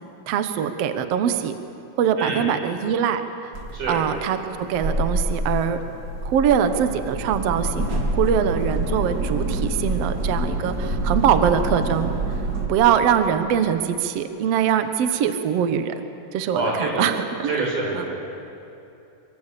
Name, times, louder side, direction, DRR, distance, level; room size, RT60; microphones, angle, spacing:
voice 1, 0.3-1.5 2.0-3.2 3.9-5.8 6.2-12.1 12.7-15.9 16.3-17.6 17.9-18.1, right 8 dB, 75° right, 9 dB, 1.4 m, -22 dB
sound 1, 3.5-12.7, right 1 dB, 30° right, 2.4 m, -26 dB
voice 2, 3.7-4.0 16.5-17.0 17.5-18.2, right 2 dB, 55° right, -2 dB, 7.4 m, -26 dB
24.5 x 24.0 x 8.3 m, 2.8 s
omnidirectional pair, 4.5 m